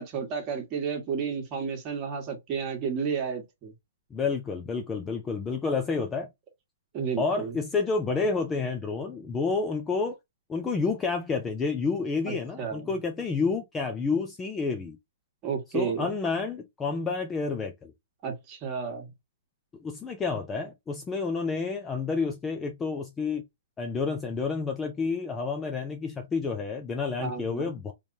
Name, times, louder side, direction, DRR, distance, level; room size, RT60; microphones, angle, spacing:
voice 1, 0.0-3.7 6.9-7.5 12.3-12.9 15.4-16.1 18.2-19.1 27.2-27.7, right 6 dB, 25° right, 1.5 m, -32 dB
voice 2, 4.1-6.3 7.2-10.2 10.5-15.0 15.7-17.9 19.8-23.4 23.8-27.9, left 4 dB, 10° left, 0.4 m, -29 dB
3.3 x 3.1 x 2.6 m
hypercardioid pair, 160°, 0 cm